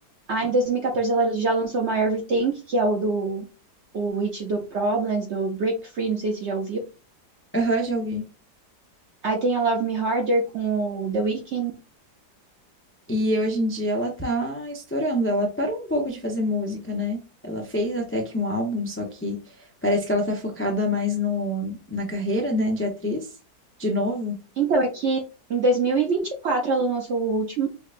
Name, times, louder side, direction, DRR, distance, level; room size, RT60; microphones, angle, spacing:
voice 1, 0.3-3.5 3.9-6.8 9.2-11.7 24.6-25.2 25.5-27.7, right 3 dB, 60° right, 2 dB, 0.7 m, -24 dB
voice 2, 7.5-8.2 13.1-19.4 19.8-23.3 23.8-24.4, left 1 dB, 20° left, 1 dB, 0.3 m, -26 dB
5.7 x 2.2 x 2.5 m, 0.32 s
omnidirectional pair, 1.8 m